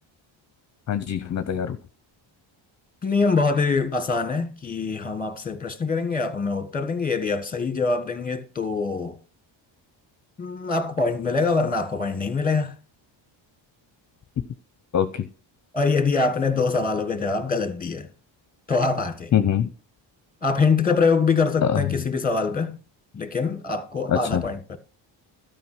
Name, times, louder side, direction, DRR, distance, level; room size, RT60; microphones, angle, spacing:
voice 1, 0.9-1.8 14.9-15.2 19.3-19.7 21.7-21.8 24.1-24.4, left 9 dB, 35° left, 0.7 m, -23 dB
voice 2, 3.0-9.2 10.4-12.7 15.7-18.1 18.7-19.3 20.4-22.8 23.1-24.8, left 4 dB, 20° left, 1.4 m, -24 dB
13.0 x 5.2 x 6.0 m
cardioid pair, 135°, 47 cm